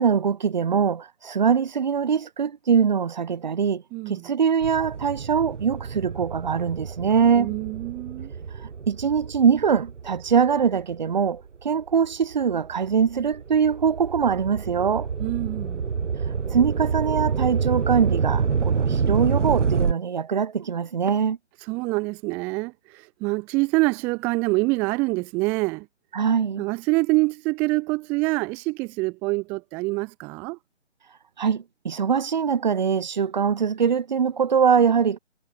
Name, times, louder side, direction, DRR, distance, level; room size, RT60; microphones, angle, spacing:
voice 1, 0.0-7.5 8.6-15.1 16.5-21.4 26.1-26.6 31.4-35.2, right 7 dB, 40° right, 0.9 m, -23 dB
voice 2, 3.9-4.3 7.4-8.3 15.2-15.8 21.7-25.9 26.6-30.6, right 25 dB, 5° right, 0.8 m, -26 dB
sound 1, 4.6-11.4 11.9-19.9, right 6 dB, 75° right, 1.0 m, -27 dB
figure-of-eight pair, 155°, 36 cm